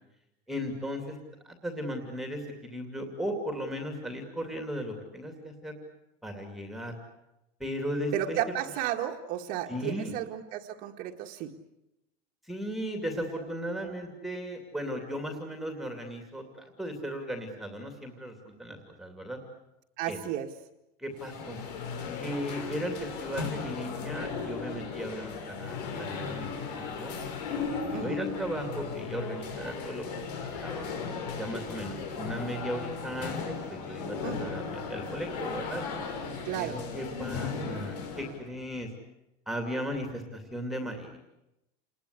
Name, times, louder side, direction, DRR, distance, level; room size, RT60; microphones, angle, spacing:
voice 1, 0.5-1.2 1.4-5.7 6.2-7.0 7.6-8.4 9.7-10.1 12.4-19.4 20.1-20.2 21.0-21.6 22.2-27.1 27.7-30.3 30.6-30.9 31.4-35.8 36.6-38.9 39.5-41.2, equal, ahead, 4 dB, 2.6 m, -36 dB
voice 2, 8.1-11.5 20.0-20.5 27.9-28.2 34.2-34.6 36.5-36.8, right 11 dB, 45° right, 2 dB, 1.8 m, -33 dB
sound 1, 21.1-38.4, left 5 dB, 85° left, 6.0 m, -36 dB
29.0 x 21.0 x 8.3 m, 0.90 s
cardioid pair, 175°, 20 cm